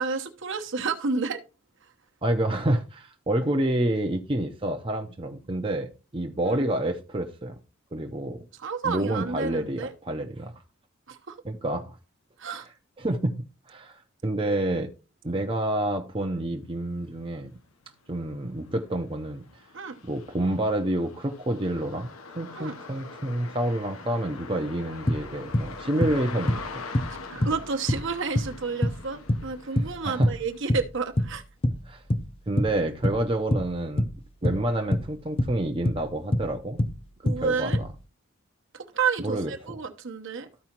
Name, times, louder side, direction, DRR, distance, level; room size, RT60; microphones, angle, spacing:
voice 1, 0.0-1.4 6.5-6.6 8.6-9.9 11.1-11.4 12.4-12.7 19.7-20.0 22.6-22.7 27.3-31.4 37.2-37.8 38.7-40.5, right 5 dB, 60° right, 0.9 m, -30 dB
voice 2, 2.2-7.6 7.9-8.4 8.8-10.5 11.4-12.0 13.0-13.3 13.7-14.9 15.2-17.5 18.1-19.4 20.0-22.1 22.3-26.8 30.0-30.3 31.9-32.0 32.5-34.1 34.4-36.8 37.2-37.9 39.2-39.8, right 1 dB, 25° right, 0.7 m, -28 dB
sound 1, 17.3-17.4 17.9-30.7, left 4 dB, 75° left, 0.9 m, -43 dB
sound 2, 25.1-31.4 31.6-38.0, left 1 dB, 25° left, 0.6 m, -26 dB
13.5 x 4.8 x 2.9 m
head